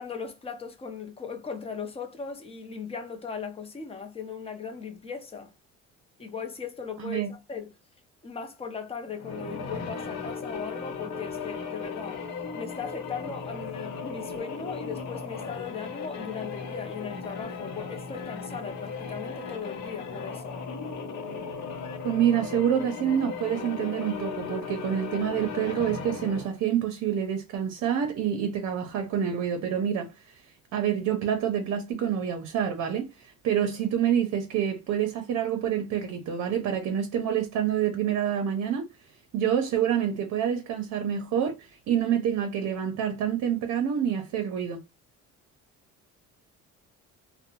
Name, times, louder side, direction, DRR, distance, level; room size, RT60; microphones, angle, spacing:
voice 1, 0.0-5.5 6.2-7.7 8.2-12.2 12.5-20.6, left 5 dB, 20° left, 0.5 m, -38 dB
voice 2, 7.0-7.3 22.0-30.3 30.7-38.8 39.3-44.8, right 9 dB, 60° right, 0.6 m, -27 dB
sound 1, 9.1-26.6, left 5 dB, 60° left, 0.7 m, -36 dB
2.6 x 2.0 x 2.8 m
cardioid pair, 125°, 30 cm